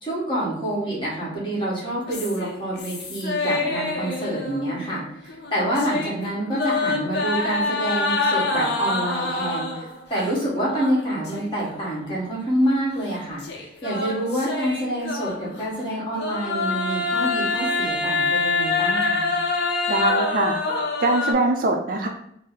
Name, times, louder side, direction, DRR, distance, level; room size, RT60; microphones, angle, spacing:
voice 1, 0.0-9.8 10.1-13.4 13.8-19.3, right 1 dB, 30° left, -6 dB, 1.4 m, -27 dB
sound 1, 2.1-5.0 5.3-10.0 10.7-11.7 12.1-12.2 13.4-15.6 16.1-21.3, left 3 dB, 60° left, 0.6 m, -26 dB
voice 2, 19.9-20.6 21.0-22.1, right 2 dB, 50° right, 3 dB, 0.5 m, -22 dB
3.9 x 2.1 x 3.9 m, 0.73 s
head